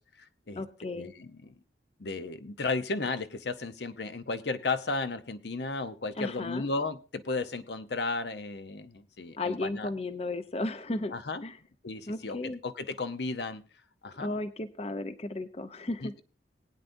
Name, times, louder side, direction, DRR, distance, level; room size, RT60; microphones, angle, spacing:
voice 1, 0.0-0.6 0.9-1.5 2.0-9.9 11.1-11.4 11.8-13.6 14.0-14.3 16.0-16.2, left 3 dB, 70° left, 10 dB, 0.8 m, -34 dB
voice 2, 0.6-1.1 6.2-6.7 9.4-11.1 11.4-11.6 12.1-12.6 14.2-16.2, left 2 dB, 35° left, 10 dB, 0.6 m, -34 dB
20.0 x 9.2 x 2.6 m, 0.35 s
head